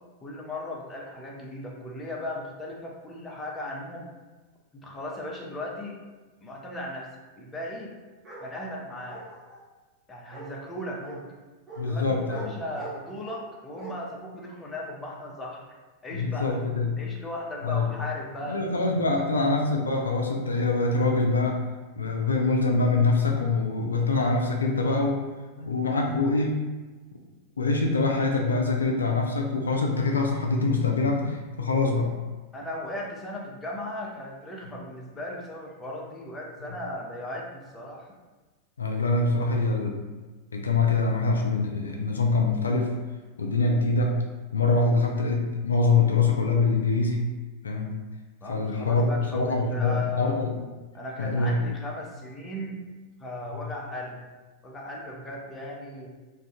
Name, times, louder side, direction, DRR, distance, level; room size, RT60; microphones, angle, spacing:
voice 1, 0.2-4.1 4.8-6.0 6.4-7.9 8.4-9.2 10.1-11.2 11.8-15.6 16.0-16.5 17.0-19.3 32.5-38.1 39.4-39.5 48.4-50.4 50.9-52.8 53.2-54.2 54.6-56.1, left 1 dB, 15° left, -2 dB, 0.6 m, -37 dB
Bark, 8.2-8.5 9.1-9.6 10.3-10.5 11.0-11.2 11.7-11.8 12.3-12.5 12.8-13.4 13.8-13.9, right 3 dB, 20° right, 0.9 m, -42 dB
voice 2, 11.8-12.5 16.2-17.0 17.6-17.9 18.4-21.6 22.0-25.2 25.6-26.5 27.6-32.1 38.8-40.0 40.5-42.9 43.4-47.3 47.6-48.0 48.5-50.5 51.2-51.6 53.5-53.7, left 3 dB, 75° left, 1 dB, 0.3 m, -24 dB
2.5 x 2.4 x 3.6 m, 1.3 s
figure-of-eight pair, 90°, 0 cm